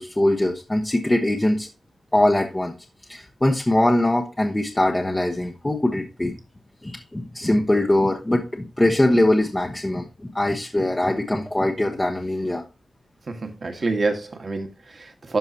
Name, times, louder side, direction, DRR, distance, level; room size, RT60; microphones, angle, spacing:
voice 1, 0.0-1.7 2.1-2.7 3.1-6.3 6.8-12.6, left 1 dB, 15° left, 1.0 m, -22 dB
voice 2, 13.3-15.4, right 3 dB, 50° right, 1.6 m, -27 dB
12.5 x 4.8 x 2.9 m
cardioid pair, 70°, 0 cm